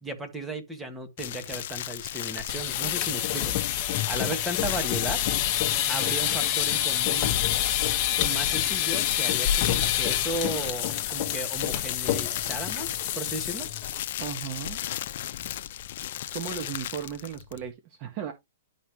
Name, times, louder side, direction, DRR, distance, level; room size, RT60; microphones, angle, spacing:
voice 1, 0.0-3.5 4.1-5.2 5.9-7.3 8.2-13.7, right 1 dB, 5° right, 1.6 m, -35 dB
sound 1, 1.2-5.7 8.1-17.7, left 12 dB, 55° left, 0.8 m, -36 dB
sound 2, 2.4-14.0 14.3-14.6 14.9-15.0 15.4-15.8, left 12 dB, 35° left, 1.4 m, -27 dB
voice 2, 14.2-14.8 16.3-18.3, right 8 dB, 35° right, 1.6 m, -35 dB
11.0 x 5.5 x 3.1 m
hypercardioid pair, 150°, 0 cm